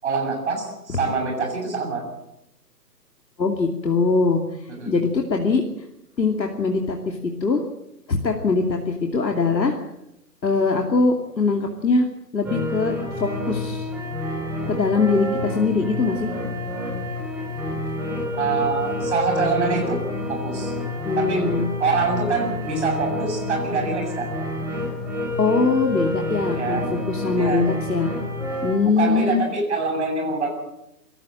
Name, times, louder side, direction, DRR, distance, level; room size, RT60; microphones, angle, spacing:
voice 1, 0.0-2.0 4.8-5.0 18.4-20.0 20.3-20.7 21.1-21.5 21.8-24.3 26.5-26.9 27.4-27.7 28.8-30.5, right 4 dB, 45° right, 1 dB, 7.5 m, -25 dB
voice 2, 3.4-4.4 4.9-5.6 6.2-7.6 8.1-9.8 10.4-12.1 12.3-13.9 14.7-16.3 21.0-21.7 25.4-28.1 28.6-29.4, left 4 dB, 85° left, 3 dB, 2.8 m, -22 dB
sound 1, 12.4-28.7, left 1 dB, 5° right, 3.9 m, -28 dB
23.0 x 14.0 x 8.9 m, 0.85 s
hypercardioid pair, 165°, 50 cm